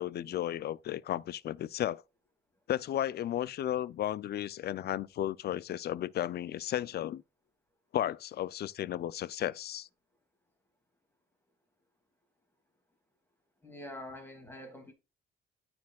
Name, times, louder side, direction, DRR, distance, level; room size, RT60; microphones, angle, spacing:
voice 1, 0.0-2.0 2.7-7.2 7.9-9.9, left 12 dB, 55° left, 0.4 m, -34 dB
voice 2, 13.6-14.9, left 1 dB, 10° left, 2.4 m, -45 dB
13.0 x 4.4 x 2.3 m
cardioid pair, 90°, 20 cm